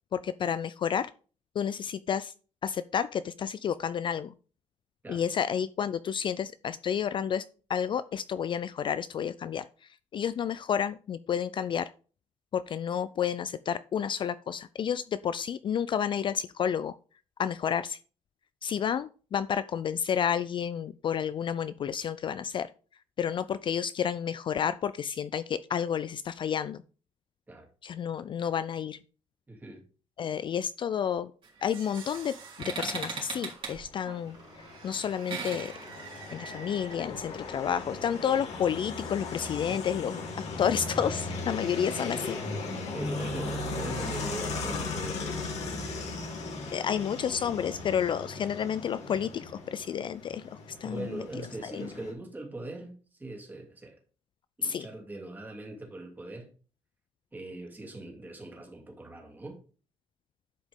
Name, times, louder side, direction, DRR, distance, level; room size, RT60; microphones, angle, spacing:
voice 1, 0.1-1.1 1.6-2.3 2.6-4.3 5.1-7.4 7.7-9.6 10.1-11.9 12.5-16.9 17.4-18.0 18.6-22.7 23.2-26.8 27.8-29.0 30.2-31.3 31.6-34.4 34.8-35.7 36.3-40.2 40.6-42.4 46.7-51.2 51.6-51.9 54.6-54.9, left 8 dB, 45° left, 0.4 m, -30 dB
voice 2, 29.5-29.8 39.7-39.8 42.9-45.5 47.0-47.2 50.8-53.9 54.6-56.5 57.3-59.6, right 2 dB, 15° right, 2.7 m, -41 dB
sound 1, 31.4-37.0, right 5 dB, 45° right, 3.6 m, -40 dB
sound 2, 33.7-52.1, left 3 dB, 65° left, 2.5 m, -38 dB
sound 3, 43.0-47.2 47.7-48.0 48.8-49.2, left 1 dB, 15° left, 0.7 m, -42 dB
11.0 x 5.1 x 3.6 m
cardioid pair, 135°, 12 cm